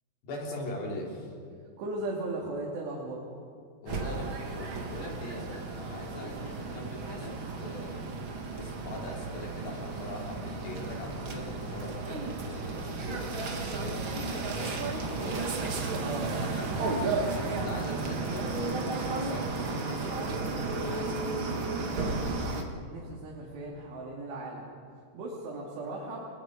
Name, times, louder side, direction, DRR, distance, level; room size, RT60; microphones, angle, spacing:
voice 1, 0.2-1.3 3.8-8.0 8.5-16.0 16.3-16.7 17.3-21.4, left 1 dB, 75° left, -1 dB, 5.8 m, -42 dB
voice 2, 1.8-3.2 16.0-16.4 22.9-24.7 25.1-26.3, right 2 dB, 85° right, -3 dB, 4.9 m, -37 dB
sound 1, 3.9-22.6, right 3 dB, 50° right, 1.5 m, -33 dB
29.5 x 21.5 x 5.1 m, 2.4 s
omnidirectional pair, 4.8 m